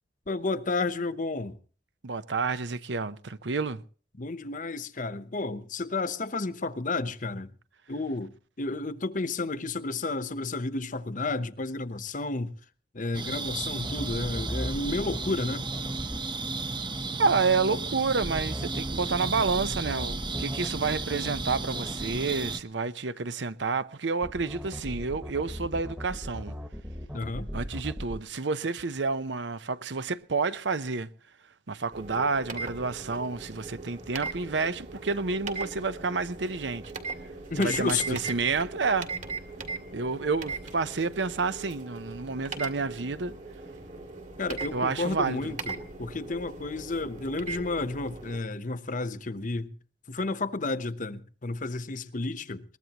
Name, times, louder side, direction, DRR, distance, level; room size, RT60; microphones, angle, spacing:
voice 1, 0.3-1.6 4.2-7.5 7.9-12.5 12.9-15.7 27.1-27.5 37.5-38.2 44.4-49.7 50.1-52.6, left 3 dB, 45° left, 0.9 m, -31 dB
voice 2, 2.0-3.8 17.2-26.6 27.5-31.1 31.7-36.8 37.6-39.1 39.9-43.3 44.7-45.5, right 4 dB, 80° right, 0.8 m, -29 dB
Ambience - outdoors at night suburban with crickets, 13.1-22.6, right 3 dB, 25° right, 0.9 m, -34 dB
sound 1, 13.8-16.2 18.2-22.2 24.2-28.2, equal, 10° right, 1.2 m, -37 dB
sound 2, 31.9-48.4, right 3 dB, 45° right, 2.2 m, -39 dB
22.0 x 20.0 x 3.0 m
head